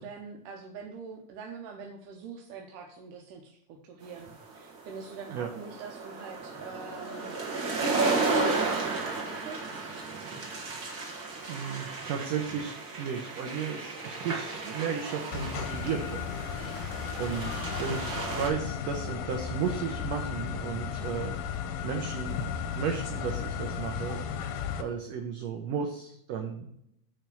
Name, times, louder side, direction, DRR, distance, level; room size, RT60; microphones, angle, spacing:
voice 1, 0.0-9.9, right 5 dB, 90° right, 1 dB, 2.4 m, -44 dB
sound 1, 4.2-18.5, right 3 dB, 40° right, 1.5 m, -33 dB
voice 2, 11.5-21.4 21.8-24.3 24.7-26.7, right 7 dB, 70° right, 3 dB, 1.7 m, -34 dB
sound 2, 15.3-24.8, left 8 dB, 85° left, 2.4 m, -35 dB
9.1 x 3.4 x 6.8 m, 0.74 s
omnidirectional pair, 3.6 m